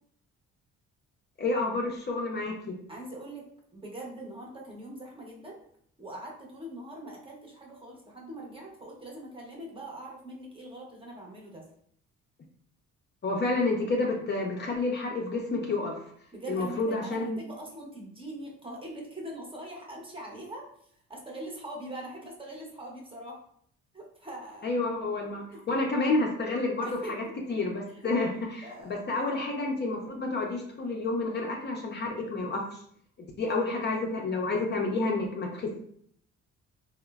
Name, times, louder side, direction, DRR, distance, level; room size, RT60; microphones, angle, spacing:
voice 1, 1.4-2.7 13.2-15.9 16.5-17.4 24.6-32.6 33.4-35.7, left 3 dB, 35° left, 0 dB, 0.4 m, -29 dB
voice 2, 2.9-3.5 3.7-5.6 6.0-11.7 16.3-20.7 21.1-23.4 23.9-24.8 25.5-25.6 26.8-27.5 27.9-28.1 28.6-29.4 33.5-33.8, right 1 dB, 20° right, -1 dB, 0.7 m, -42 dB
2.9 x 2.0 x 2.2 m, 0.64 s
cardioid pair, 90°, 30 cm